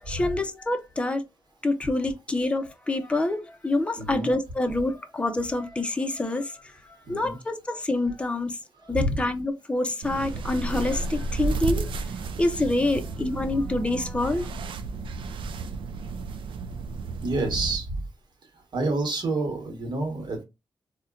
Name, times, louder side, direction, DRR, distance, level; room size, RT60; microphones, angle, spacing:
voice 1, 0.0-1.2 1.6-8.6 8.9-14.5, left 2 dB, 15° left, 0.5 m, -27 dB
voice 2, 4.0-4.3 7.1-7.4 8.8-9.2 17.2-18.0 18.7-20.4, right 2 dB, 60° right, 1.2 m, -28 dB
sound 1, 10.0-17.8, right 3 dB, 80° right, 0.4 m, -32 dB
4.1 x 2.1 x 2.4 m
cardioid pair, 95°, 8 cm